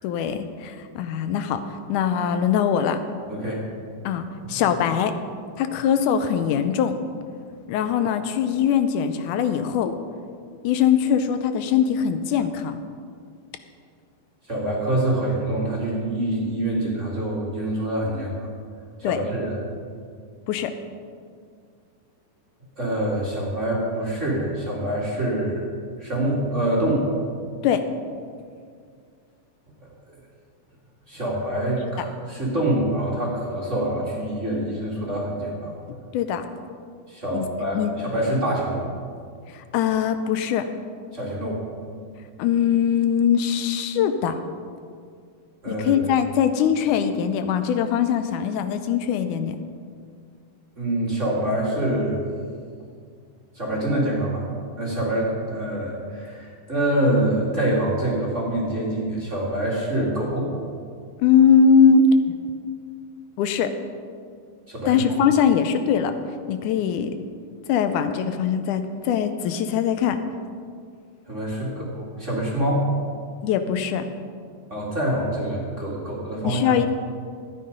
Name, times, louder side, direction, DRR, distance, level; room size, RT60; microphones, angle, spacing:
voice 1, 0.0-3.0 4.0-5.1 5.6-7.0 7.7-10.0 10.6-12.8 19.0-19.2 20.5-20.7 27.6-27.9 36.1-36.5 37.3-37.5 37.7-37.9 39.5-40.7 42.4-44.4 45.7-49.6 61.2-62.1 63.4-63.7 64.9-66.1 66.5-67.1 67.7-70.2 73.4-74.1 76.4-76.9, left 7 dB, 85° left, 8 dB, 2.1 m, -21 dB
voice 2, 3.3-3.6 4.4-4.6 14.5-18.5 19.0-19.6 22.8-25.7 26.0-27.1 31.1-35.7 37.1-38.9 41.1-41.7 45.6-46.0 50.8-52.2 53.5-54.4 54.8-60.5 64.7-65.0 71.3-72.9 74.7-76.7, right 1 dB, 25° right, -5 dB, 2.0 m, -25 dB
13.0 x 9.4 x 5.2 m, 2.1 s
omnidirectional pair, 3.6 m